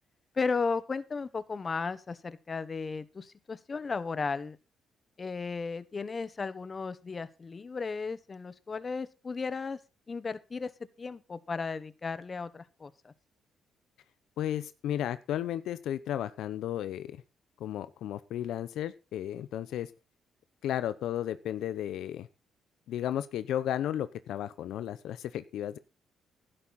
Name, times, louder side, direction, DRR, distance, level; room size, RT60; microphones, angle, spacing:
voice 1, 0.3-4.6 5.2-9.8 10.1-10.7 11.0-13.1, left 4 dB, 35° left, 15 dB, 1.2 m, -35 dB
voice 2, 14.4-17.2 17.6-19.9 20.6-22.3 22.9-25.8, left 11 dB, 80° left, 14 dB, 0.8 m, -34 dB
12.5 x 11.5 x 4.2 m, 0.29 s
cardioid pair, 90°, 0 cm